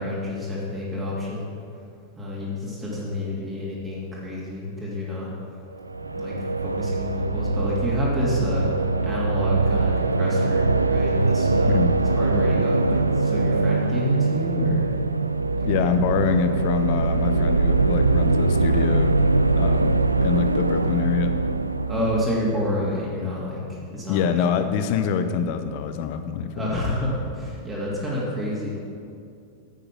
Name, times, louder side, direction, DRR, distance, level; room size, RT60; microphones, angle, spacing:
voice 1, 0.0-1.5 2.2-5.3 6.1-8.7 9.0-14.9 15.5-15.9 21.9-24.3 26.5-28.7, left 1 dB, 15° right, -6 dB, 2.6 m, -29 dB
sound 1, 5.8-22.8, right 3 dB, 80° right, 0.3 m, -22 dB
voice 2, 15.6-19.2 19.5-21.3 24.1-26.8, left 7 dB, 45° left, 9 dB, 0.7 m, -25 dB
10.5 x 7.9 x 6.0 m, 2.4 s
figure-of-eight pair, 90°, 0 cm